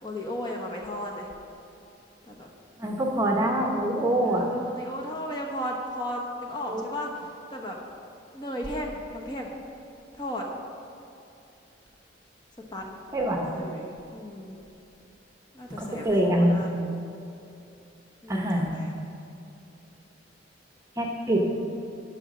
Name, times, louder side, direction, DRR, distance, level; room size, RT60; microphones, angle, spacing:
voice 1, 0.0-1.3 2.3-2.5 4.2-7.8 8.3-9.6 10.1-10.5 12.7-13.1 13.4-14.6 15.5-17.0 18.2-18.9, left 1 dB, 25° left, -1 dB, 1.1 m, -35 dB
voice 2, 2.8-4.5 6.7-6.8 13.1-13.5 15.8-16.6 18.3-18.8 21.0-21.5, right 1 dB, 15° right, 0 dB, 0.9 m, -24 dB
10.5 x 5.9 x 6.2 m, 2.8 s
head